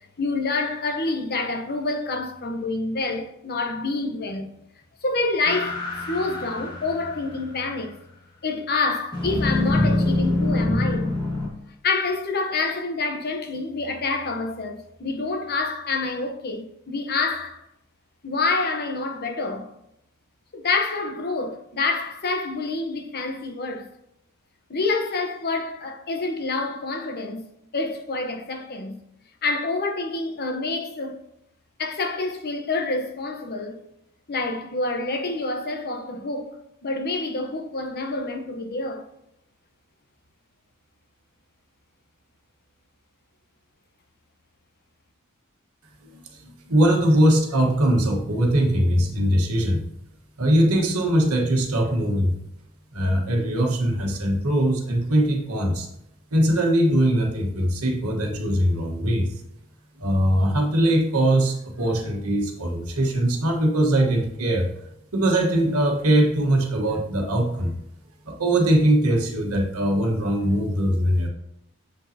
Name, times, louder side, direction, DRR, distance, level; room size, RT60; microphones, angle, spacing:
voice 1, 0.2-4.5 5.0-8.0 8.4-11.2 11.8-17.6 18.2-19.7 20.5-23.9 24.7-27.4 27.7-29.0 29.4-31.2 31.8-33.8 34.3-39.1, left 3 dB, 45° left, 1.0 m, -27 dB
sound 1, 5.4-7.5 9.1-11.5, left 2 dB, 20° left, 1.9 m, -24 dB
voice 2, 46.1-49.8 50.4-52.3 52.9-55.9 56.3-59.3 60.0-64.7 65.1-67.7 68.2-71.3, right 1 dB, 90° right, 1.4 m, -21 dB
7.3 x 5.5 x 2.8 m
head